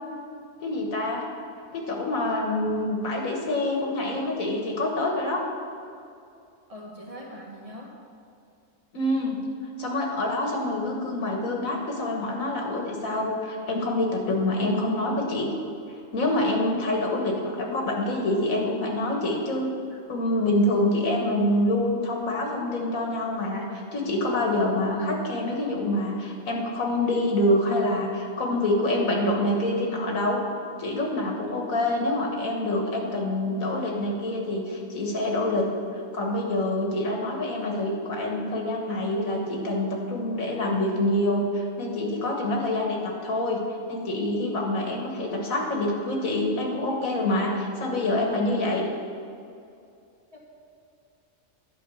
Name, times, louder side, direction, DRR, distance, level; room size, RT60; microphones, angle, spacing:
voice 1, 0.6-1.3 1.7-5.4 8.9-9.4 9.8-15.5 16.1-30.4 30.8-35.7 35.9-43.6 43.9-48.8, left 1 dB, 80° left, 0 dB, 1.8 m, -26 dB
voice 2, 6.7-7.9 50.3-50.4, equal, 25° right, -4 dB, 1.9 m, -41 dB
11.0 x 5.3 x 7.1 m, 2.5 s
omnidirectional pair, 1.4 m